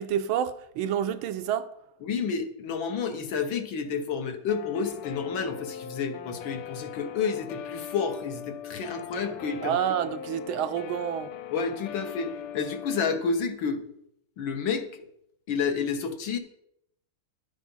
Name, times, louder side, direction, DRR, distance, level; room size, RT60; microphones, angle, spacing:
voice 1, 0.0-1.7 9.6-11.3, right 9 dB, 75° right, 1.4 m, -28 dB
voice 2, 2.0-9.8 11.5-13.8 14.4-15.0 15.5-16.4, left 5 dB, 65° left, 1.7 m, -30 dB
Guitar, 4.5-13.2, left 8 dB, 85° left, 1.6 m, -40 dB
11.0 x 7.4 x 5.4 m
omnidirectional pair, 2.4 m